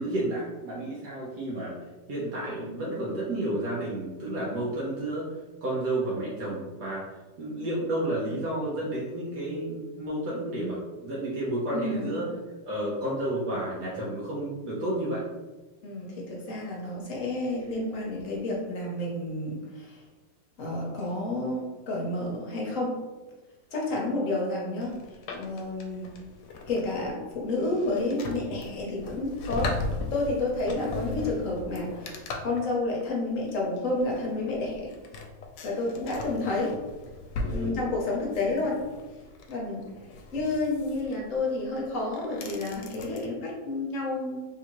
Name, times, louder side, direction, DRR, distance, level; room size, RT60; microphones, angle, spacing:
voice 1, 0.0-7.1 7.4-12.3 12.6-15.2 37.4-37.8, right 1 dB, 70° right, -6 dB, 1.3 m, -31 dB
voice 2, 11.7-12.2 15.8-20.0 20.6-23.0 23.7-24.9 25.3-26.1 26.7-29.7 30.1-34.9 35.6-36.8 37.5-38.8 39.5-39.8 40.3-44.5, left 2 dB, 55° left, -2 dB, 1.0 m, -30 dB
sound 1, 24.8-43.3, left 3 dB, 75° left, 1.1 m, -38 dB
3.5 x 2.8 x 2.9 m, 1.2 s
omnidirectional pair, 1.9 m